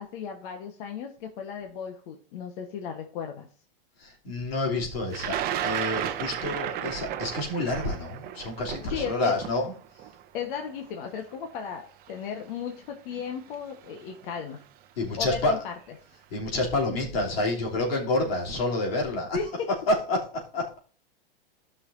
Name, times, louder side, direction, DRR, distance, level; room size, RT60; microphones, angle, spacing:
voice 1, 0.0-3.5 8.9-9.3 10.3-14.6 15.2-15.7 19.3-19.7, left 7 dB, 60° left, 3 dB, 1.3 m, -35 dB
voice 2, 4.0-5.4 5.6-9.7 15.0-15.6 16.3-19.4 19.7-20.8, left 2 dB, 85° left, -1 dB, 3.2 m, -28 dB
Thunder, 5.1-11.1 12.1-12.2 13.3-13.5 13.9-14.3, right 11 dB, 30° right, 0.8 m, -33 dB
13.5 x 5.8 x 2.7 m, 0.41 s
hypercardioid pair, 130°, 29 cm